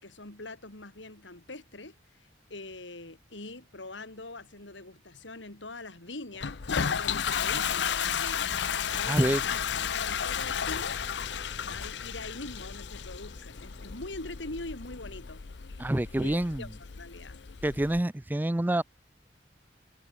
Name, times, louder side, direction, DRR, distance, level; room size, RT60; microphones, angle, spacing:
voice 1, 0.0-6.6 6.9-8.6 9.0-9.4 9.9-11.3 11.6-15.4 16.2-17.4, left 2 dB, 85° left, 3.7 m, -43 dB
sound 1, 6.3-15.3, equal, 30° left, 4.3 m, -56 dB
Toilet flush, 6.4-18.0, left 7 dB, 70° left, 0.7 m, -33 dB
voice 2, 9.1-9.4 15.8-16.6 17.6-18.8, right 1 dB, 10° right, 0.4 m, -27 dB
head